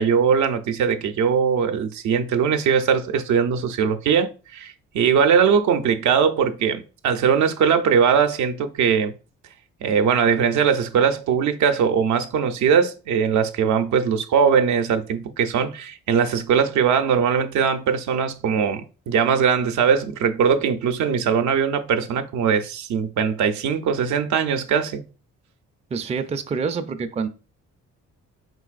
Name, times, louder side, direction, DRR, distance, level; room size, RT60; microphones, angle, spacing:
voice 1, 0.0-9.1 9.8-25.0, right 7 dB, 70° right, 0.6 m, -20 dB
voice 2, 25.9-27.3, right 5 dB, 20° right, 0.4 m, -26 dB
4.5 x 4.0 x 2.4 m
cardioid pair, 90°, 30 cm